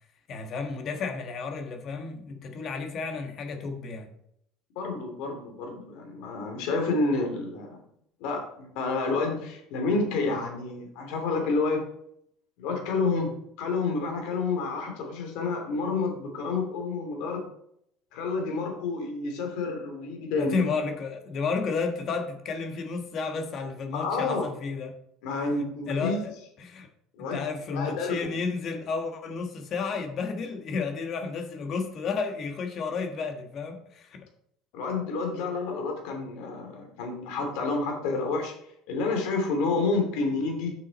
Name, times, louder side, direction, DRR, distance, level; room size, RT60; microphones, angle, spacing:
voice 1, 0.3-4.1 20.4-24.9 25.9-26.9 27.2-34.2, left 4 dB, 45° left, 4 dB, 1.4 m, -32 dB
voice 2, 4.7-7.8 8.2-11.9 12.6-17.4 18.1-20.6 23.9-24.5 25.2-26.2 27.1-27.5 27.7-28.3 34.7-38.5 38.9-40.7, left 3 dB, 75° left, 2 dB, 2.8 m, -29 dB
7.0 x 6.2 x 4.2 m, 0.72 s
supercardioid pair, 110°, 0 cm